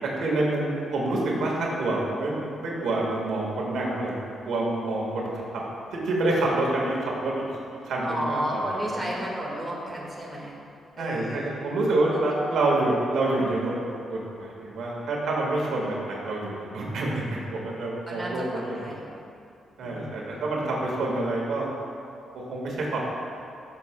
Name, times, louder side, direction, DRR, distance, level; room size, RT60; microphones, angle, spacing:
voice 1, 0.2-5.3 5.9-7.4 7.8-9.0 11.0-13.7 14.1-18.9 19.8-21.7 22.5-23.0, right 2 dB, 80° right, -3 dB, 1.7 m, -27 dB
voice 2, 8.0-10.6 10.9-11.5 12.1-12.4 18.1-19.2 19.8-20.2, right 1 dB, 5° right, -5 dB, 1.7 m, -33 dB
13.5 x 7.2 x 2.3 m, 2.5 s
cardioid pair, 120°, 0 cm